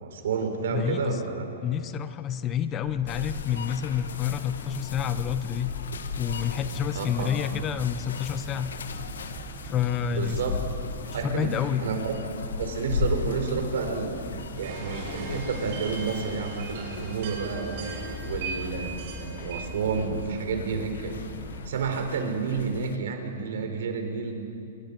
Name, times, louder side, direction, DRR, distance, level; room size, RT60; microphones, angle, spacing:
voice 1, 0.0-1.6 6.9-7.3 10.1-10.5 11.1-12.1 12.6-14.2 14.5-18.0 18.2-21.2 21.7-24.3, right 5 dB, 70° right, 5 dB, 3.9 m, -30 dB
voice 2, 0.7-1.2 1.6-5.7 6.2-8.7 9.6-10.4 11.2-11.8, left 9 dB, 20° left, 12 dB, 0.7 m, -28 dB
sound 1, 2.8-21.7, right 2 dB, 10° right, 1.1 m, -43 dB
sound 2, 3.1-23.0, left 5 dB, 90° left, 1.6 m, -37 dB
sound 3, 14.6-19.7, right 4 dB, 50° right, 6.3 m, -39 dB
27.0 x 23.5 x 5.3 m, 2.6 s
hypercardioid pair, 155°, 0 cm